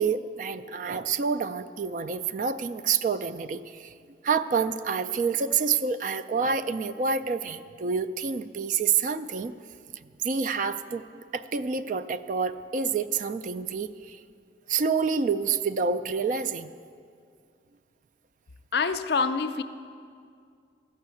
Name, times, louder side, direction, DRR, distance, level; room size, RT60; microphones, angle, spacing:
voice 1, 0.0-3.9 4.2-9.5 10.2-11.0 11.3-14.2 14.7-16.7, right 5 dB, 45° right, 12 dB, 0.3 m, -28 dB
voice 2, 18.7-19.6, left 5 dB, 60° left, 10 dB, 0.5 m, -26 dB
13.0 x 5.6 x 8.3 m, 2.3 s
head